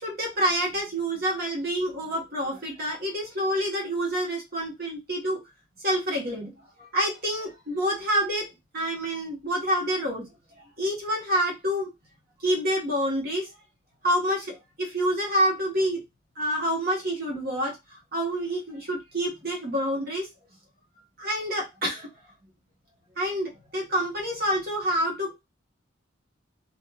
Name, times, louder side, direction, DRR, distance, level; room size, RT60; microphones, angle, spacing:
voice 1, 0.0-5.4 5.8-6.5 6.8-10.3 10.8-11.9 12.4-13.5 14.0-16.0 16.4-20.3 21.2-22.1 23.2-25.3, equal, 50° right, -1 dB, 1.2 m, -27 dB
3.1 x 2.5 x 2.3 m, 0.22 s
head